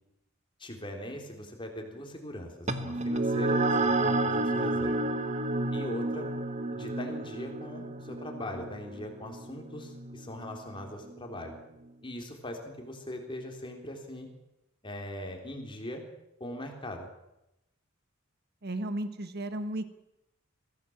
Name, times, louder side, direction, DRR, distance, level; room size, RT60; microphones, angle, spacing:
voice 1, 0.6-5.0 5.7-6.3 6.7-11.5 12.0-14.3 14.8-16.0 16.4-17.1, left 1 dB, 25° left, 3 dB, 3.7 m, -40 dB
sound 1, 2.7-11.5, right 2 dB, 35° right, 1.2 m, -31 dB
voice 2, 18.6-19.9, right 1 dB, 50° right, 11 dB, 1.6 m, -34 dB
22.5 x 16.0 x 7.4 m, 0.89 s
head